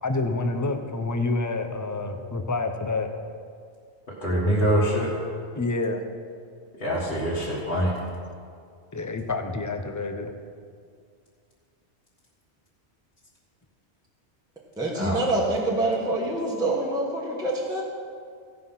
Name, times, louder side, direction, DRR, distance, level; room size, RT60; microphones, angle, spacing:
voice 1, 0.0-3.1 5.5-6.0 8.9-10.3, left 3 dB, 20° left, 6 dB, 0.5 m, -28 dB
voice 2, 4.2-5.1 6.8-7.9 15.0-15.2, equal, 55° left, -8 dB, 1.8 m, -24 dB
voice 3, 14.8-17.8, right 2 dB, 5° right, -4 dB, 1.2 m, -26 dB
16.0 x 5.6 x 5.6 m, 2.2 s
omnidirectional pair, 1.2 m